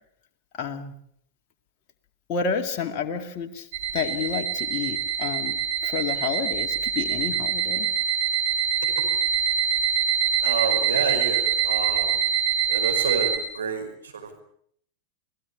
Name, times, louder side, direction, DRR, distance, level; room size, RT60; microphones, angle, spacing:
voice 1, 0.5-0.9 2.3-3.7 3.9-5.6 5.8-7.9, left 6 dB, 40° left, 3 dB, 2.3 m, -30 dB
sound 1, 3.7-13.4, right 8 dB, 50° right, 6.1 m, -24 dB
voice 2, 10.4-12.2 12.7-14.4, right 5 dB, 70° right, 3 dB, 5.4 m, -29 dB
27.5 x 17.5 x 7.3 m, 0.65 s
figure-of-eight pair, 90°, 0 cm